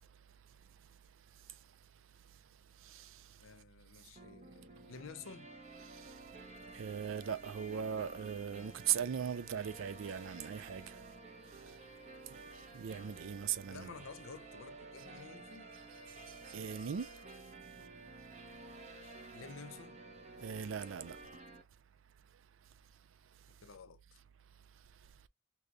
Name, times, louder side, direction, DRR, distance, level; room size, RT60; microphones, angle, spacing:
voice 1, 3.4-5.5 13.7-15.7 19.3-20.0 23.6-24.2, left 5 dB, 85° left, 0.5 m, -52 dB
sound 1, 4.2-21.6, right 2 dB, 35° right, 0.7 m, -52 dB
voice 2, 6.7-10.8 12.7-13.9 16.5-17.1 20.4-21.2, right 8 dB, 80° right, 0.4 m, -38 dB
6.3 x 2.2 x 2.3 m
head